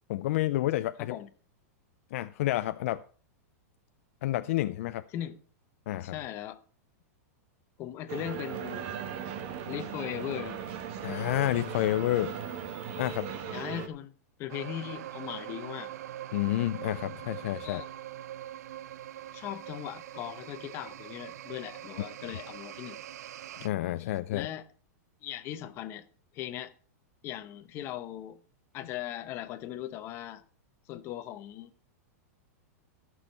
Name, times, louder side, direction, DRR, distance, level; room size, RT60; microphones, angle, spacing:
voice 1, 0.1-1.2 2.1-3.0 4.2-5.0 5.9-6.2 11.0-12.3 13.0-13.3 16.3-17.8 23.6-24.5, left 15 dB, 55° left, 0.4 m, -29 dB
voice 2, 6.0-6.6 7.8-8.9 9.7-10.6 13.5-14.1 14.4-15.9 17.6-17.9 19.3-23.0 24.0-24.7 25.2-26.1 26.3-26.7 27.2-28.4 28.7-30.4 30.9-31.7, left 12 dB, 30° left, 0.9 m, -39 dB
sound 1, 8.1-13.9, right 8 dB, 40° right, 1.3 m, -38 dB
sound 2, 14.5-23.7, right 12 dB, 80° right, 0.4 m, -43 dB
15.0 x 6.4 x 5.5 m
supercardioid pair, 160°, 9 cm